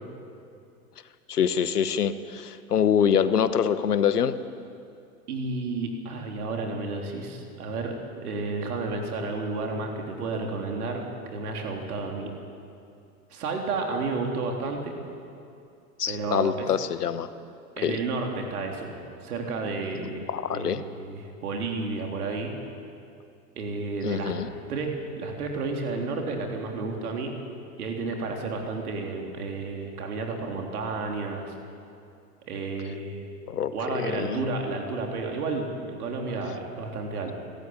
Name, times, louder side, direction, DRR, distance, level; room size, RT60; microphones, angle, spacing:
voice 1, 1.3-4.4 16.0-17.3 17.8-18.0 20.0-20.8 24.0-24.5 33.5-34.4, left 8 dB, 85° left, 13 dB, 1.1 m, -25 dB
voice 2, 5.3-11.0 11.3-12.3 13.3-14.9 16.1-16.7 17.8-20.2 20.5-22.5 23.6-24.3 24.7-27.3 27.8-31.5 32.5-33.2 33.7-37.3, right 3 dB, 75° right, 2 dB, 3.6 m, -31 dB
27.5 x 13.0 x 8.9 m, 2.5 s
hypercardioid pair, 95°, 45 cm